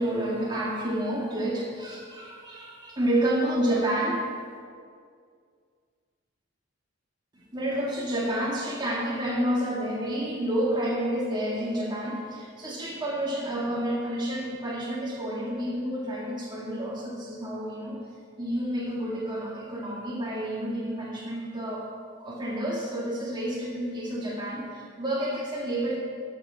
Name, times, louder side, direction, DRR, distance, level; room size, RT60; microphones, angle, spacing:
voice 1, 0.0-4.3 7.3-18.0 18.4-21.9 22.2-26.0, right 1 dB, 20° right, -4 dB, 1.9 m, -29 dB
11.5 x 7.4 x 5.7 m, 2.1 s
head